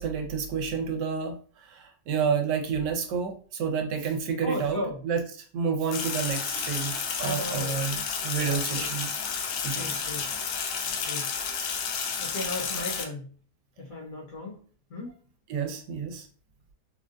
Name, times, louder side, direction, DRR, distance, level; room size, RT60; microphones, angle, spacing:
voice 1, 0.0-5.2 5.5-9.1 9.6-10.1 15.5-16.3, right 6 dB, 85° right, 5 dB, 1.2 m, -30 dB
voice 2, 4.4-5.0 7.2-7.9 8.4-8.9 9.7-10.3 11.0-11.3 12.2-13.3 13.8-14.6 14.9-15.1, left 1 dB, 60° left, -2 dB, 1.2 m, -36 dB
Sink (filling or washing), 5.9-13.0, left 6 dB, 75° left, 0.7 m, -31 dB
3.9 x 2.2 x 2.4 m, 0.43 s
omnidirectional pair, 1.8 m